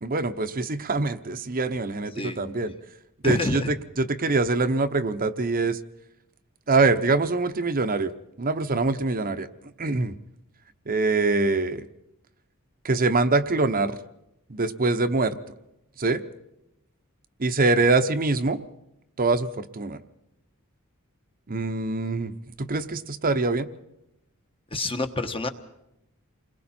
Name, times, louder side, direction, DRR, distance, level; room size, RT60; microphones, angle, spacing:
voice 1, 0.0-2.7 3.2-5.8 6.7-8.1 8.4-9.5 9.8-10.2 10.9-11.9 12.8-14.0 14.5-15.4 16.0-16.2 17.4-18.6 19.2-20.0 21.5-23.7, right 3 dB, 40° right, 8 dB, 0.9 m, -24 dB
voice 2, 3.2-3.7 24.7-25.5, left 2 dB, 25° left, 7 dB, 1.2 m, -27 dB
28.5 x 21.5 x 4.4 m, 0.85 s
head